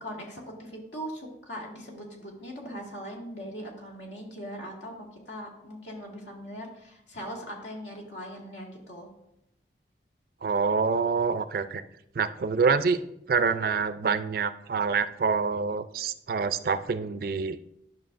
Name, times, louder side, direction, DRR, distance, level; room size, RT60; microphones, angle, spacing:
voice 1, 0.0-9.1, equal, 80° left, -1 dB, 1.9 m, -40 dB
voice 2, 10.4-11.8 12.1-13.0 13.3-17.6, right 5 dB, 50° right, 12 dB, 0.4 m, -26 dB
11.0 x 6.0 x 2.5 m, 0.79 s
head